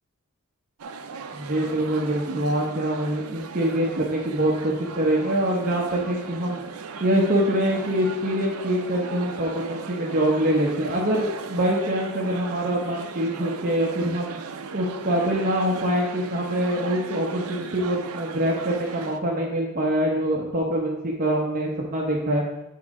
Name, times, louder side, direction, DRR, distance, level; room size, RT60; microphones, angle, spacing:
sound 1, 0.8-19.2, right 5 dB, 80° right, 0.6 m, -37 dB
voice 1, 1.3-6.6 7.0-14.4 14.7-22.4, right 1 dB, 40° right, -3 dB, 0.9 m, -24 dB
8.5 x 3.7 x 4.9 m, 0.95 s
head